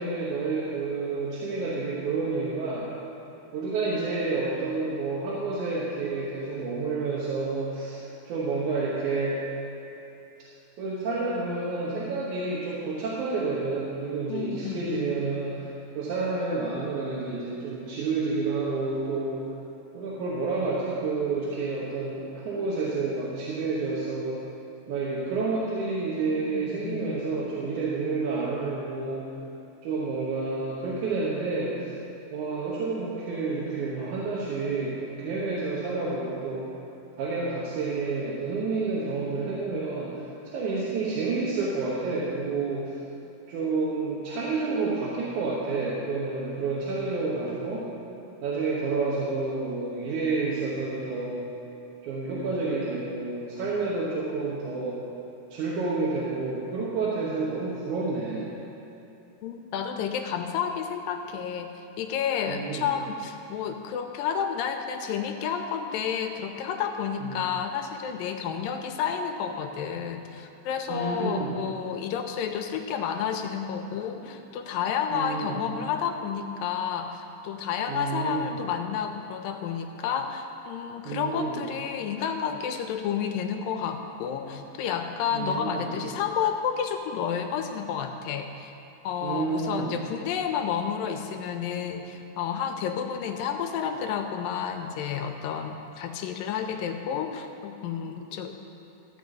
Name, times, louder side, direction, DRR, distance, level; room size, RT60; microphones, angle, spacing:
voice 1, 0.0-2.9 3.5-8.0 8.2-9.4 10.8-19.4 19.9-24.4 24.9-29.3 29.8-31.9 32.3-36.7 37.2-42.9 43.5-47.8 48.4-51.4 52.0-55.0 55.5-58.5 62.5-62.9 67.2-67.3 70.9-71.5 75.1-75.6 77.9-78.6 81.0-81.6 85.3-85.9 89.2-89.9, right 3 dB, 65° right, -6 dB, 2.4 m, -29 dB
voice 2, 14.3-15.2 26.5-27.2 29.4-29.5 59.4-61.7 62.0-88.7 89.0-98.6, left 7 dB, 85° left, 5 dB, 2.3 m, -30 dB
13.5 x 5.5 x 7.8 m, 2.9 s
omnidirectional pair, 4.1 m